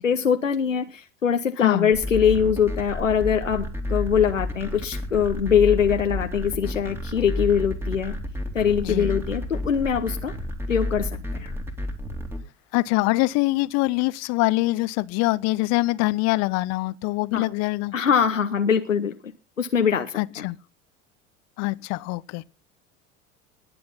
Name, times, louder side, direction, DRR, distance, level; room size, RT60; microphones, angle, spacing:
voice 1, 0.0-3.6 3.9-8.1 8.5-10.3 10.7-11.5 17.3-17.4 17.9-19.3 19.6-20.4, left 7 dB, 85° left, 0.9 m, -22 dB
voice 2, 1.6-1.9 8.8-9.1 12.7-17.9 20.2-20.6 21.6-22.5, left 21 dB, 45° left, 0.8 m, -24 dB
sound 1, 1.9-12.4, left 1 dB, 5° right, 3.2 m, -30 dB
20.0 x 7.8 x 3.9 m
figure-of-eight pair, 75°, 37 cm